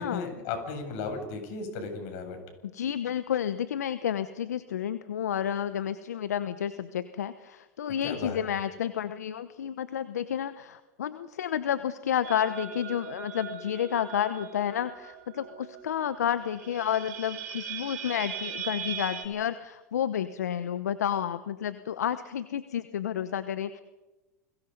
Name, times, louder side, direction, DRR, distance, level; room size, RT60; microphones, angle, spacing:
voice 1, 0.0-2.4 8.0-8.4, left 4 dB, 60° left, 5 dB, 7.8 m, -35 dB
voice 2, 2.6-23.8, left 9 dB, 85° left, 13 dB, 1.0 m, -31 dB
sound 1, 12.2-15.8 16.1-16.2 16.4-19.3, right 8 dB, 70° right, 4.1 m, -39 dB
30.0 x 22.0 x 5.5 m, 1.1 s
hypercardioid pair, 95°, 9 cm